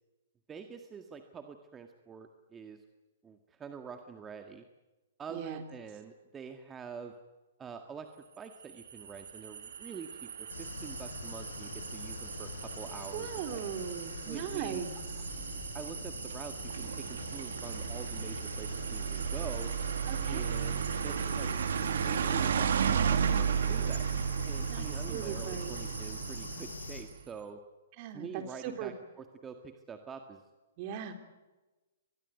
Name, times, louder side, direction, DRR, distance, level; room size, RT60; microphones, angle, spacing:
voice 1, 0.5-2.8 3.2-4.7 5.2-7.1 7.6-8.1 8.4-13.6 14.3-14.8 15.5-19.7 20.3-21.5 22.1-22.7 23.0-24.1 24.5-27.6 28.1-30.4, right 6 dB, 15° right, 6 dB, 1.8 m, -46 dB
voice 2, 5.3-5.6 13.1-15.2 20.1-20.5 24.7-25.8 28.0-28.9 30.8-31.1, right 9 dB, 45° right, 7 dB, 3.8 m, -39 dB
sound 1, 8.6-27.1, right 7 dB, 70° right, 1.9 m, -34 dB
sound 2, 10.5-27.0, left 4 dB, 85° left, 6.8 m, -43 dB
24.5 x 21.0 x 9.3 m, 1.1 s
hypercardioid pair, 125°, 0 cm